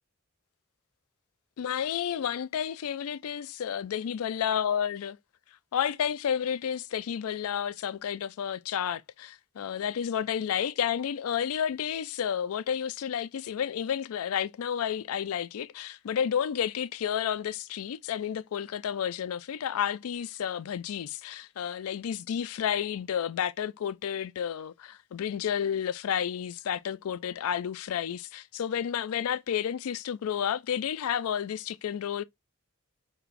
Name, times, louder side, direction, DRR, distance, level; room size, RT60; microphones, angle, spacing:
voice 1, 1.6-5.2 5.7-32.2, left 8 dB, 80° left, 0.3 m, -31 dB
4.6 x 2.9 x 2.4 m
head